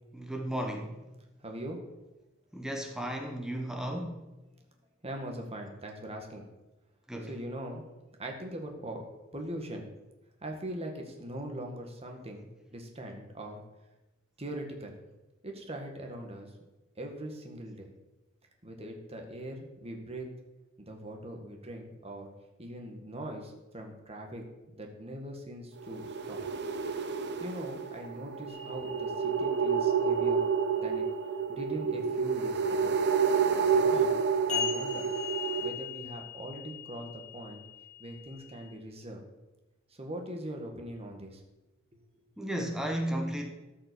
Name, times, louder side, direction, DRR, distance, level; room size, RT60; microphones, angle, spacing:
voice 1, 0.1-1.0 2.5-4.2 7.1-7.3 42.4-43.5, right 1 dB, 5° right, 3 dB, 1.1 m, -34 dB
voice 2, 1.4-1.8 5.0-6.5 7.2-7.8 8.2-9.0 9.3-9.9 10.4-13.6 14.4-15.1 15.4-16.5 17.0-17.9 18.6-20.3 20.8-22.3 22.6-24.4 24.7-26.5 27.4-30.4 30.8-31.1 31.5-32.9 33.5-35.1 35.6-37.6 38.0-39.2 39.9-41.4 41.9-42.0, right 1 dB, 30° right, 2 dB, 1.9 m, -41 dB
sound 1, 25.8-35.7, right 6 dB, 55° right, 0.8 m, -29 dB
sound 2, 28.5-31.6 34.5-38.7, left 10 dB, 35° left, 2.5 m, -41 dB
13.5 x 5.7 x 7.0 m, 1.0 s
head